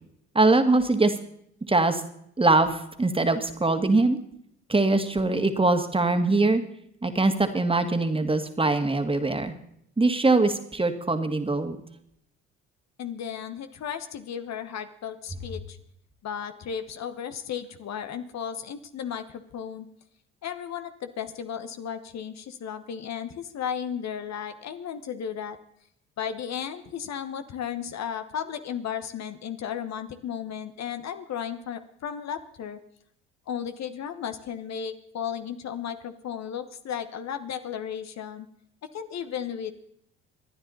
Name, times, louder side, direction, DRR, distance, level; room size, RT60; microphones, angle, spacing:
voice 1, 0.4-1.2 1.7-2.0 2.4-4.2 4.7-6.6 7.0-9.5 10.0-11.8, right 2 dB, 15° right, 7 dB, 1.9 m, -22 dB
voice 2, 13.0-15.8 16.2-19.9 20.4-25.6 26.2-32.8 33.5-38.5 38.9-39.7, left 8 dB, 55° left, 10 dB, 1.2 m, -34 dB
25.5 x 10.0 x 4.0 m, 0.73 s
hypercardioid pair, 60°, 33 cm